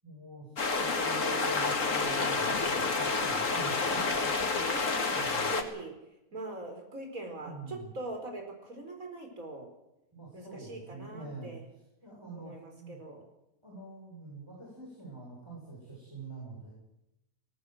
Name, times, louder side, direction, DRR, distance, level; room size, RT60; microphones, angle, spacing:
voice 1, 0.0-0.5 0.8-4.6 5.1-5.5 7.4-7.9 10.1-11.5 12.0-13.0 13.6-16.7, right 2 dB, 15° right, -5 dB, 7.4 m, -44 dB
sound 1, 0.6-5.6, left 4 dB, 55° left, 2.3 m, -29 dB
voice 2, 4.5-5.9 6.3-9.7 10.3-11.6 12.3-13.2, right 2 dB, 60° right, 3 dB, 5.1 m, -42 dB
18.5 x 18.0 x 7.9 m, 0.91 s
omnidirectional pair, 1.6 m